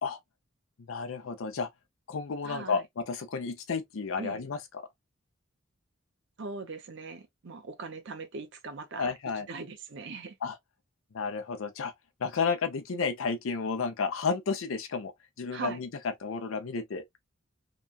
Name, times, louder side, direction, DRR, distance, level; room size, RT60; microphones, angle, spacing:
voice 1, 0.9-1.7 2.1-4.6 9.0-9.5 10.4-10.5 11.1-11.9 12.2-15.1 15.4-15.9 16.2-17.2, left 5 dB, 80° left, 0.5 m, -32 dB
voice 2, 2.4-2.8 4.2-4.4 6.4-9.1 9.5-10.4 15.5-15.8, right 3 dB, 60° right, 0.7 m, -40 dB
2.9 x 2.2 x 2.3 m
head